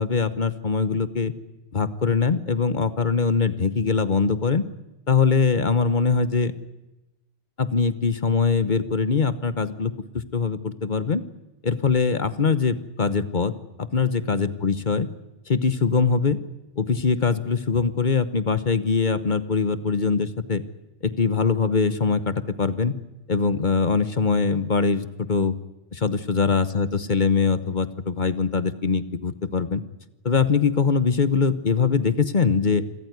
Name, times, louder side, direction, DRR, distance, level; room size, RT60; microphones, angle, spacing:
voice 1, 0.0-1.3 1.7-4.6 5.1-6.5 7.6-9.9 10.3-11.2 11.6-13.5 13.8-15.1 15.5-16.4 16.8-20.6 21.0-22.9 23.3-25.5 25.9-29.8 30.2-32.8, left 5 dB, 45° left, 13 dB, 1.2 m, -22 dB
27.0 x 14.0 x 9.6 m, 1.0 s
omnidirectional pair, 1.2 m